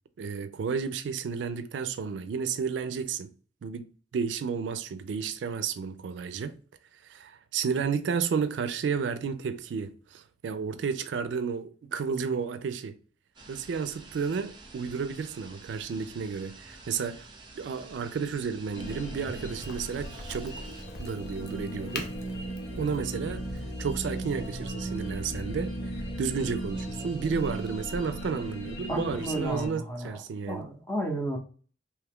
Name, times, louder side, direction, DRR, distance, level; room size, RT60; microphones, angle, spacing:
voice 1, 0.2-3.3 3.6-3.9 4.1-6.6 7.0-13.0 13.5-17.3 17.6-22.1 22.7-25.8 26.2-30.6, right 6 dB, 85° right, 0.3 m, -32 dB
sound 1, 13.3-20.8, right 3 dB, 25° right, 0.5 m, -50 dB
sound 2, 18.7-29.7, right 1 dB, 80° left, 1.2 m, -37 dB
Crack, 19.6-25.1, left 4 dB, 60° left, 0.5 m, -45 dB
voice 2, 28.9-30.2 30.5-31.4, right 1 dB, 15° left, 0.6 m, -32 dB
2.8 x 2.3 x 3.5 m
head